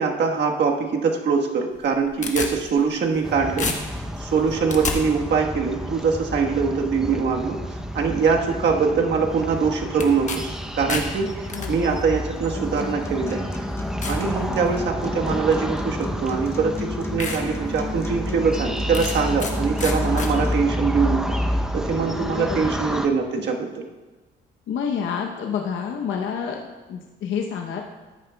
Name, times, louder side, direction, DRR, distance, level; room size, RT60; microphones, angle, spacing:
voice 1, 0.0-7.6 7.9-13.4 14.0-21.4 21.7-23.7, right 5 dB, 60° right, 1 dB, 1.4 m, -23 dB
sound 1, 1.7-3.3 3.6-5.0 10.0-10.4 10.7-11.7 12.6-12.7 13.3-13.4 14.0-14.2 14.7-15.1 16.2-16.3 16.8-16.9 17.2-17.4 17.8-17.9 18.9-19.5 19.8-20.3, left 4 dB, 35° left, 1.3 m, -30 dB
sound 2, 3.2-23.1, equal, 5° right, 0.7 m, -29 dB
voice 2, 11.5-11.9 22.2-22.8 24.7-27.8, left 7 dB, 75° left, 1 dB, 0.9 m, -29 dB
Acoustic guitar, 12.5-20.5, left 2 dB, 15° left, 1.2 m, -35 dB
14.0 x 9.9 x 2.3 m, 1.2 s
cardioid pair, 90°, 20 cm